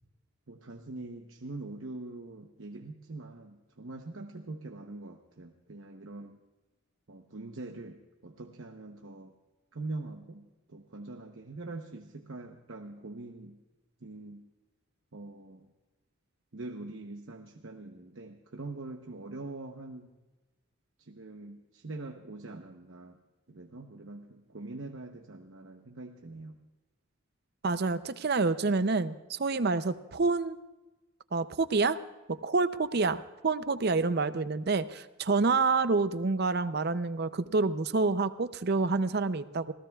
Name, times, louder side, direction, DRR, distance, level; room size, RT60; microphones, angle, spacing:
voice 1, 0.5-6.4 7.1-9.3 9.7-13.6 14.0-14.5 15.1-15.7 16.5-20.1 21.0-23.2 23.5-26.6, right 2 dB, 65° right, 3 dB, 0.9 m, -43 dB
voice 2, 27.6-30.6 31.3-32.0 32.3-39.7, right 3 dB, 50° right, 13 dB, 0.6 m, -28 dB
27.0 x 16.5 x 2.4 m, 1.1 s
head